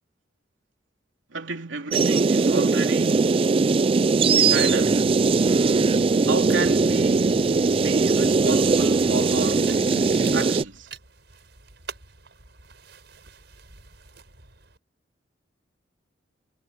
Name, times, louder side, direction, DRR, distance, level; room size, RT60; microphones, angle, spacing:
voice 1, 1.3-3.4 4.2-5.1 6.2-9.7 10.3-10.9, right 3 dB, 85° right, 3.2 m, -32 dB
sound 1, 1.9-10.6, right 4 dB, 30° right, 0.4 m, -20 dB
sound 2, 4.4-10.4, left 1 dB, 65° left, 7.9 m, -38 dB
sound 3, 8.2-14.8, right 5 dB, 60° right, 6.8 m, -46 dB
head